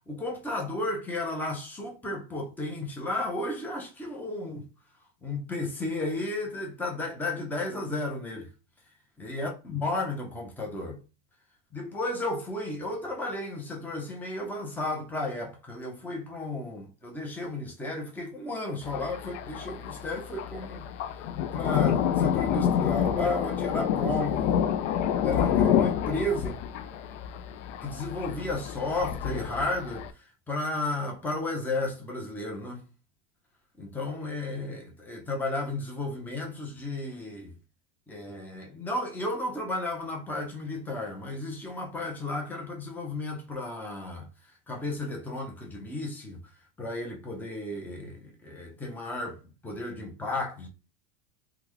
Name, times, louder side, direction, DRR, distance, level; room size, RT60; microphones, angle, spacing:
voice 1, 0.1-4.7 5.2-8.5 9.2-11.0 11.7-20.9 21.5-24.5 25.2-26.6 27.8-32.8 33.8-37.5 38.1-46.4 46.8-50.7, left 2 dB, 5° left, 0.7 m, -33 dB
Thunder, 18.8-30.1, left 9 dB, 85° left, 0.5 m, -28 dB
3.5 x 2.3 x 3.1 m
supercardioid pair, 135°, 36 cm